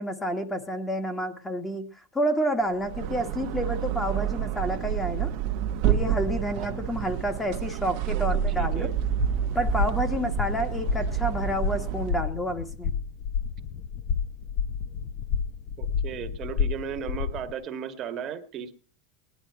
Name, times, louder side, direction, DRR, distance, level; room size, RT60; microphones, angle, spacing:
voice 1, 0.0-1.8 2.1-5.3 5.8-8.9 9.5-12.9, equal, 10° left, 6 dB, 1.6 m, -29 dB
sound 1, 2.7-12.3, right 11 dB, 55° right, 1.1 m, -29 dB
sound 2, 8.1-17.5, left 7 dB, 45° left, 1.1 m, -31 dB
voice 2, 8.1-8.9 15.8-18.8, right 8 dB, 35° right, 8 dB, 1.5 m, -36 dB
18.0 x 11.0 x 4.7 m, 0.38 s
supercardioid pair, 140°, 0 cm